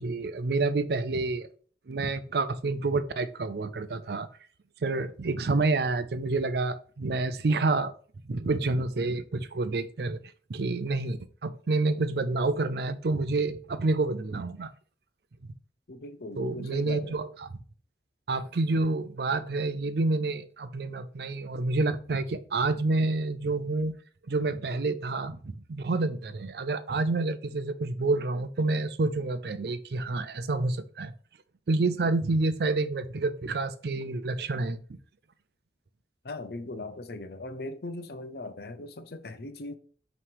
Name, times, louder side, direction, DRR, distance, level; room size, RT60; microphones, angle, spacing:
voice 1, 0.0-1.5 1.9-4.3 4.8-7.9 8.3-10.2 10.5-14.7 16.4-17.5 18.3-24.0 24.3-31.1 31.7-35.0, right 3 dB, 60° right, 0.5 m, -28 dB
voice 2, 15.9-17.2 36.2-39.7, left 2 dB, 60° left, 0.6 m, -39 dB
5.7 x 3.2 x 5.2 m
head